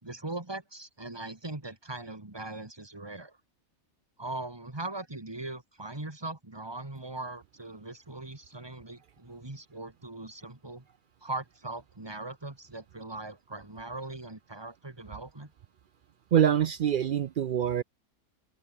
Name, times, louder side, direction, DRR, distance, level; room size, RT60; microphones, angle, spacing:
voice 1, 0.0-3.4 4.2-10.8 11.2-15.5, right 2 dB, 20° right, 2.2 m, -40 dB
voice 2, 16.3-17.8, right 10 dB, 80° right, 0.4 m, -25 dB
omnidirectional pair, 1.4 m